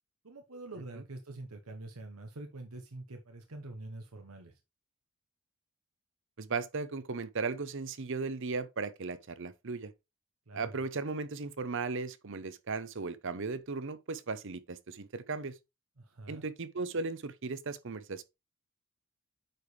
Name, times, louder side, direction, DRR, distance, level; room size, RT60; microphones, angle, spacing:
voice 1, 0.2-4.6 10.5-10.8 16.0-16.4, right 2 dB, 90° right, 1.1 m, -45 dB
voice 2, 6.4-9.9 10.5-15.5 16.3-18.2, right 4 dB, 60° right, 0.7 m, -36 dB
8.9 x 4.9 x 3.3 m
head